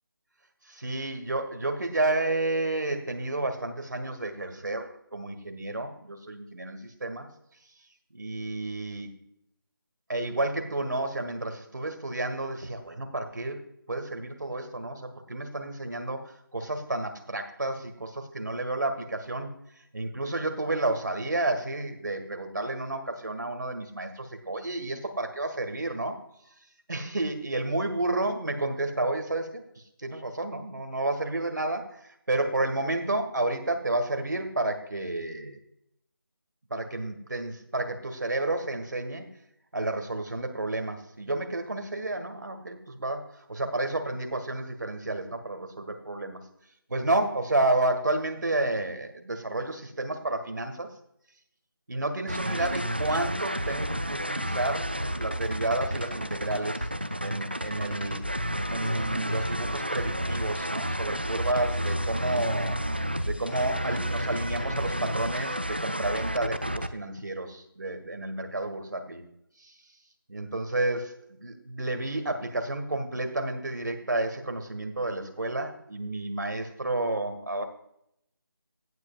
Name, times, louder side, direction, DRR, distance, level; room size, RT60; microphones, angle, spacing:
voice 1, 0.7-7.3 8.1-9.2 10.1-19.5 19.9-26.2 26.9-35.6 36.7-39.3 39.7-46.4 46.9-50.9 51.9-56.9 57.2-58.2 58.7-62.8 63.2-69.2 69.6-69.7 70.3-77.6, right 2 dB, 55° right, 6 dB, 1.7 m, -31 dB
sound 1, 52.3-66.9, equal, 30° right, 0.4 m, -31 dB
16.5 x 7.9 x 2.4 m, 0.75 s
figure-of-eight pair, 180°, 12 cm